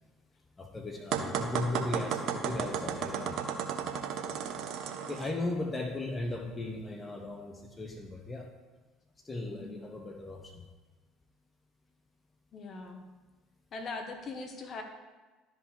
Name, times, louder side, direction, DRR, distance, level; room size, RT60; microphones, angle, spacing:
voice 1, 0.6-4.5 5.1-8.5 9.2-10.7, left 2 dB, 20° left, 3 dB, 1.1 m, -37 dB
sound 1, 1.1-5.3, right 8 dB, 60° right, 0.9 m, -34 dB
voice 2, 9.5-9.9 12.5-13.0 13.7-14.8, left 3 dB, 45° left, 4 dB, 1.3 m, -41 dB
12.5 x 5.2 x 3.4 m, 1.3 s
hypercardioid pair, 60°, 0 cm